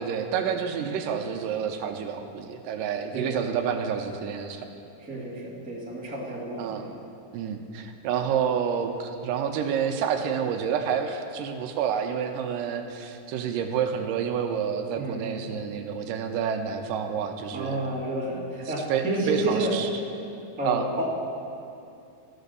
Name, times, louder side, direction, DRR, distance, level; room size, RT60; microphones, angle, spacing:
voice 1, 0.0-4.7 6.6-6.9 7.3-17.8 18.9-19.9 20.6-20.8, right 7 dB, 80° right, 6 dB, 2.2 m, -29 dB
voice 2, 3.1-3.5 5.0-6.9 14.9-15.5 17.5-19.7 20.6-21.0, right 1 dB, 10° right, -6 dB, 0.4 m, -30 dB
14.5 x 5.0 x 6.8 m, 2.6 s
omnidirectional pair, 4.0 m